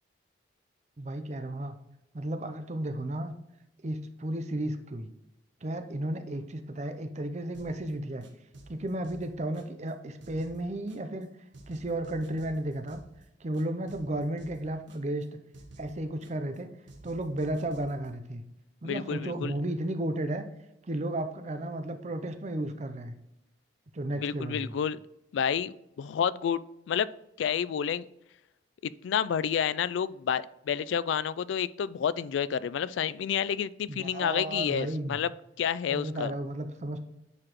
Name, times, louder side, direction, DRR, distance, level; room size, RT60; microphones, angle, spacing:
voice 1, 1.0-1.8 2.1-3.3 3.8-5.1 5.6-8.2 8.7-11.3 11.7-13.0 13.4-15.3 15.8-16.7 17.0-18.4 18.8-20.5 20.8-23.1 23.9-24.7 33.9-35.2 35.9-37.0, right 1 dB, 35° right, 8 dB, 0.6 m, -33 dB
sound 1, 7.5-7.9 8.2-9.9 10.2-11.2 11.5-13.2 13.5-15.2 15.5-16.6 16.9-18.1, right 1 dB, 80° right, 1.2 m, -51 dB
voice 2, 18.8-19.5 24.2-25.0 25.3-26.6 26.9-27.1 27.4-28.1 28.8-35.3 35.6-36.3, left 8 dB, 80° left, 18 dB, 0.3 m, -29 dB
9.6 x 4.9 x 3.0 m, 0.87 s
head